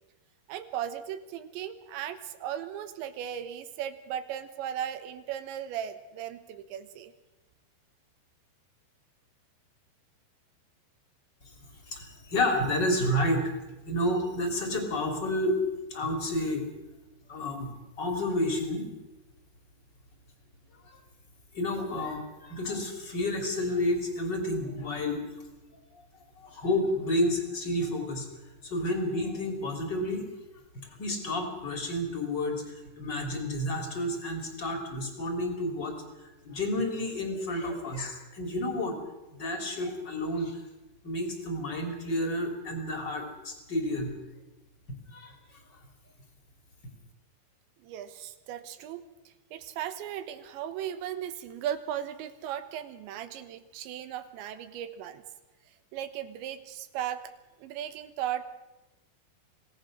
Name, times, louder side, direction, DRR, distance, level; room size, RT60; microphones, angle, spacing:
voice 1, 0.5-7.1 47.8-55.2 55.7-57.2 57.6-58.4, right 10 dB, 75° right, 10 dB, 3.3 m, -37 dB
voice 2, 11.9-13.5 13.8-15.6 15.9-16.7 17.3-18.9 21.5-25.3 26.4-28.3 28.6-30.3 30.8-35.9 36.4-39.0 39.3-40.6 41.0-44.1 45.1-45.3, left 1 dB, 25° left, 3 dB, 3.0 m, -30 dB
26.0 x 18.0 x 6.4 m, 1.1 s
omnidirectional pair, 5.6 m